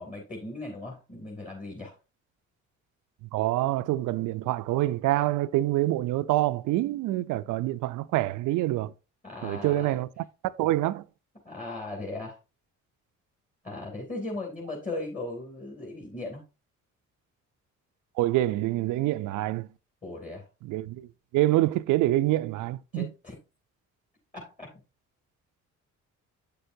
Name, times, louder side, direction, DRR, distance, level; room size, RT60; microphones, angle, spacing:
voice 1, 0.0-2.0 9.2-10.0 11.4-12.4 13.6-16.4 20.0-20.4 22.9-23.3 24.3-24.7, left 2 dB, 25° left, 2.7 m, -37 dB
voice 2, 3.3-8.9 9.4-10.2 10.6-11.0 18.2-19.7 20.6-21.1 21.3-23.1, right 16 dB, 85° right, 0.5 m, -26 dB
8.3 x 6.7 x 2.7 m
cardioid pair, 90°, 30 cm